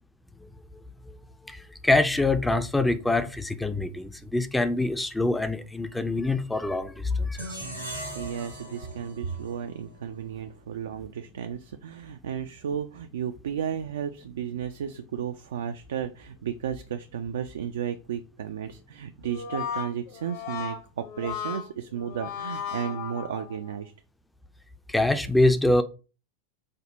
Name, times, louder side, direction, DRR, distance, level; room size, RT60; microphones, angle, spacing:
voice 1, 1.5-7.6 24.9-25.8, left 2 dB, 5° left, 0.4 m, -25 dB
sound 1, 7.3-10.5, right 1 dB, 85° right, 1.6 m, -40 dB
voice 2, 8.1-23.9, right 8 dB, 60° right, 0.3 m, -33 dB
Brass instrument, 19.2-23.7, left 7 dB, 50° left, 0.9 m, -35 dB
5.1 x 2.1 x 4.1 m
figure-of-eight pair, 90°, 0 cm